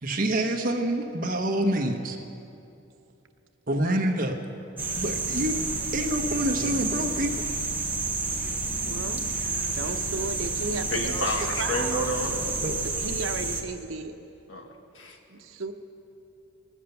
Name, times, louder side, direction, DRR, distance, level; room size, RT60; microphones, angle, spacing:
voice 1, 0.0-2.2 3.7-4.4 5.0-5.6 5.9-7.3 12.6-12.7, right 1 dB, 45° right, 3 dB, 1.1 m, -26 dB
sound 1, 4.8-13.6, right 3 dB, 10° right, 1.1 m, -30 dB
voice 2, 8.3-9.3 9.7-11.3 11.6-12.1 12.8-14.1 15.3-15.7, right 4 dB, 85° right, 5 dB, 0.8 m, -35 dB
voice 3, 10.9-12.5 14.5-15.2, left 1 dB, 75° left, 2 dB, 1.6 m, -30 dB
19.0 x 7.4 x 7.0 m, 2.8 s
head